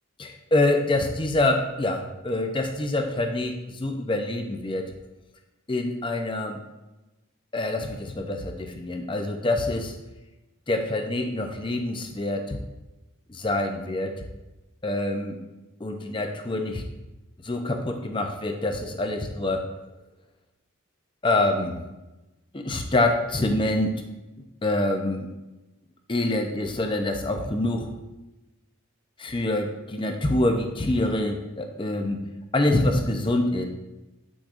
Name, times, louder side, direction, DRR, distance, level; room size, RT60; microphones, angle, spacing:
voice 1, 0.2-4.9 5.7-6.6 7.5-9.9 10.7-12.6 13.3-14.1 14.8-15.4 15.8-16.8 17.4-19.6 21.2-21.8 22.5-23.9 24.6-25.3 26.1-27.9 29.2-32.2 32.5-33.7, left 2 dB, 25° left, 5 dB, 0.6 m, -26 dB
8.4 x 6.2 x 2.5 m, 1.0 s
head